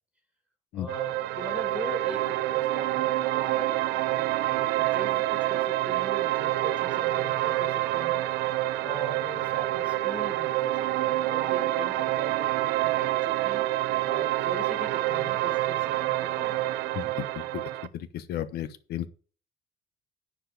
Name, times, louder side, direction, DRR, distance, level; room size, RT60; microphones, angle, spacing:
voice 1, 0.7-8.2 8.8-13.6 14.0-17.1, left 1 dB, 5° left, 5 dB, 2.1 m, -42 dB
sound 1, 0.9-17.9, right 16 dB, 90° right, 0.6 m, -27 dB
voice 2, 16.9-19.1, left 11 dB, 70° left, 12 dB, 1.1 m, -34 dB
10.0 x 5.1 x 6.5 m, 0.39 s
cardioid pair, 110°, 17 cm